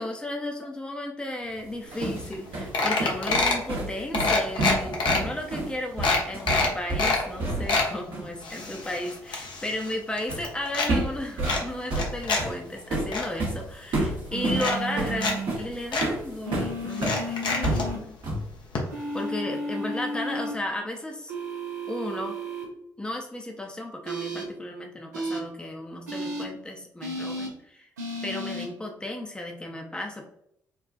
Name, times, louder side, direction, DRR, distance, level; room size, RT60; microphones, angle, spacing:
voice 1, 0.0-18.2 19.1-21.3 21.9-22.4 23.0-27.9 28.2-30.2, left 1 dB, 10° left, 2 dB, 0.6 m, -34 dB
sound 1, 1.6-8.3 10.3-10.5 10.9-17.2 17.6-18.5, right 2 dB, 60° right, 1.0 m, -30 dB
sound 2, 2.0-2.1 2.3-2.5 2.7-3.7 4.1-5.2 5.6-5.7 6.0-7.2 7.5-7.9 8.4-9.9 10.2-10.9 11.4-12.4 12.8-13.3 14.1-14.2 14.5-15.3 15.6-15.7 15.9-16.1 16.9-17.9 18.7-18.8 19.1-19.2, left 3 dB, 60° left, 0.7 m, -26 dB
sound 3, 14.3-15.5 16.5-18.0 18.9-20.5 21.3-22.6 24.0-24.4 25.1-25.4 26.1-26.4 27.0-27.5 28.0-28.7, right 1 dB, 85° right, 0.5 m, -33 dB
3.8 x 2.3 x 2.5 m, 0.73 s
figure-of-eight pair, 40°, 9 cm